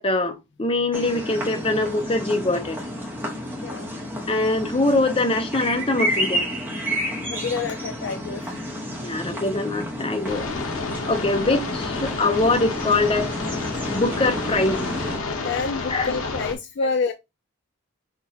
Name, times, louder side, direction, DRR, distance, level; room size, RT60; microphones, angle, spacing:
voice 1, 0.0-2.8 4.3-6.5 9.0-10.5 11.1-13.3 13.9-14.9 15.9-16.1, left 2 dB, 25° left, 0.7 m, -23 dB
sound 1, 0.9-15.2, equal, 10° right, 1.1 m, -30 dB
voice 2, 7.3-8.6 15.4-17.1, left 4 dB, 55° left, 0.3 m, -28 dB
sound 2, 10.3-16.5, left 4 dB, 75° left, 0.9 m, -30 dB
5.9 x 2.4 x 2.8 m
head